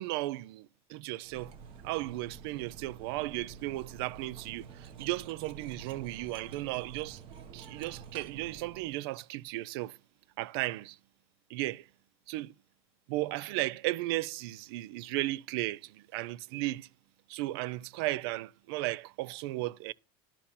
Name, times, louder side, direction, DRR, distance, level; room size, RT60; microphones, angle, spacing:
voice 1, 0.0-1.5 1.8-7.2 7.5-10.0 10.4-11.0 11.5-11.9 12.3-12.5 13.1-16.9 17.3-19.9, right 18 dB, 85° right, 0.4 m, -35 dB
Cutlery silverware, 1.2-9.0, right 6 dB, 45° right, 1.2 m, -49 dB
11.5 x 4.3 x 5.5 m
cardioid pair, 150°, 13 cm